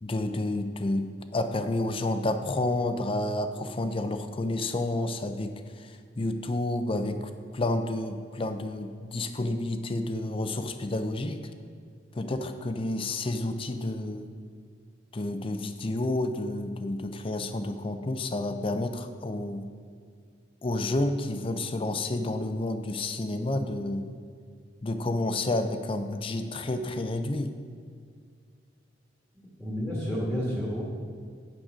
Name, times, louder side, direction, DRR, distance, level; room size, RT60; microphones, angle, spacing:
voice 1, 0.0-1.1 1.3-11.4 12.1-14.3 15.1-19.7 20.6-24.1 24.8-27.5, left 2 dB, 30° left, 8 dB, 0.5 m, -30 dB
voice 2, 29.3-30.8, equal, ahead, -5 dB, 1.5 m, -31 dB
8.7 x 7.6 x 5.0 m, 2.1 s
head